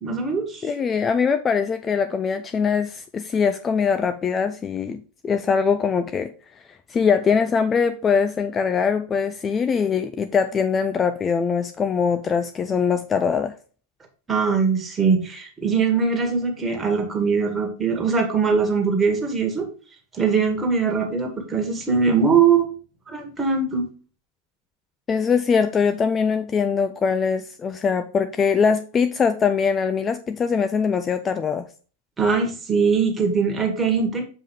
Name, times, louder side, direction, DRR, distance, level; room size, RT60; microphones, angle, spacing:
voice 1, 0.0-0.7 14.3-19.7 20.1-22.7 23.1-23.8 32.2-34.2, right 5 dB, 15° right, 2 dB, 2.1 m, -21 dB
voice 2, 0.6-6.3 6.7-13.5 25.1-31.7, left 6 dB, 20° left, 9 dB, 0.5 m, -22 dB
7.3 x 5.3 x 3.5 m, 0.39 s
figure-of-eight pair, 90°, 0 cm